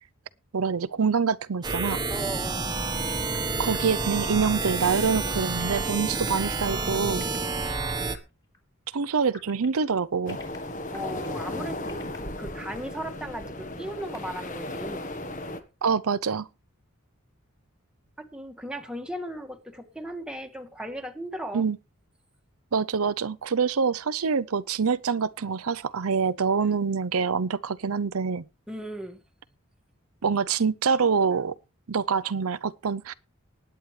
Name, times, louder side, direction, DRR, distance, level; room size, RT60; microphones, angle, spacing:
voice 1, 0.5-2.0 3.6-7.3 8.9-10.4 15.8-16.5 21.5-21.8 22.7-28.4 30.2-31.5 31.9-33.1, right 5 dB, 85° right, 0.6 m, -25 dB
sound 1, 1.6-8.2, right 3 dB, 20° right, 1.2 m, -29 dB
voice 2, 2.1-2.7 10.9-15.1 18.2-21.6 28.7-29.2, right 1 dB, 5° right, 1.6 m, -37 dB
sound 2, 3.1-7.4 7.9-8.2 8.4-8.6 9.0-9.8 10.3-11.4 11.7-12.2 12.7-13.0 13.3-13.4 13.7-14.5, left 2 dB, 15° left, 3.7 m, -48 dB
sound 3, 10.3-15.6, left 1 dB, 35° left, 1.4 m, -35 dB
19.5 x 9.2 x 3.3 m
head